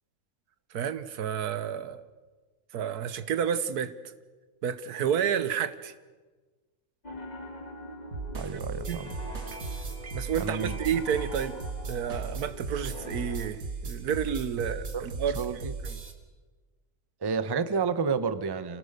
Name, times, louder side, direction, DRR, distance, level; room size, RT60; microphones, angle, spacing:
voice 1, 0.7-2.0 2.7-4.2 4.6-5.9 8.5-9.0 10.1-11.6 11.9-15.6 15.8-16.0, right 8 dB, 85° right, 13 dB, 1.5 m, -30 dB
Piano, 7.0-13.5, left 1 dB, 30° left, 1.5 m, -44 dB
sound 1, 8.1-16.1, right 4 dB, 60° right, 2.2 m, -37 dB
voice 2, 8.3-9.1 10.4-10.8 14.9-15.1 15.4-15.7 17.2-18.8, right 5 dB, 25° right, 12 dB, 0.6 m, -30 dB
sound 2, 8.8-15.4, right 4 dB, 45° right, 1.6 m, -52 dB
26.0 x 18.0 x 6.6 m, 1.3 s
omnidirectional pair, 1.6 m